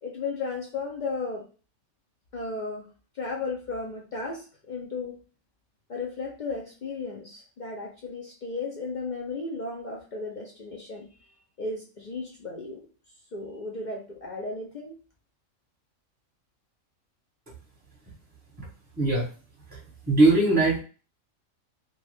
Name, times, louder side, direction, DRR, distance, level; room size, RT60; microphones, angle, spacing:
voice 1, 0.0-1.4 2.3-2.9 3.1-5.2 5.9-11.1 11.6-12.8 13.3-14.9, left 3 dB, 65° left, -1 dB, 0.4 m, -34 dB
voice 2, 19.0-19.3 19.7-19.8 20.1-20.8, right 2 dB, 5° right, -4 dB, 1.0 m, -20 dB
2.8 x 2.3 x 3.3 m, 0.36 s
omnidirectional pair, 1.5 m